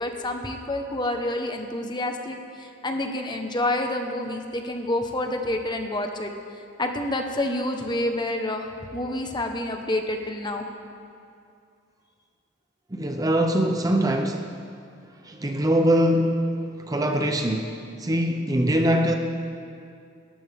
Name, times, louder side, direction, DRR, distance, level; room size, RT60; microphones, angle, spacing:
voice 1, 0.0-6.3 6.8-10.6, left 1 dB, 20° left, 4 dB, 1.2 m, -28 dB
voice 2, 12.9-14.5 15.2-19.1, equal, 20° right, 4 dB, 0.7 m, -23 dB
28.0 x 14.0 x 3.6 m, 2.4 s
head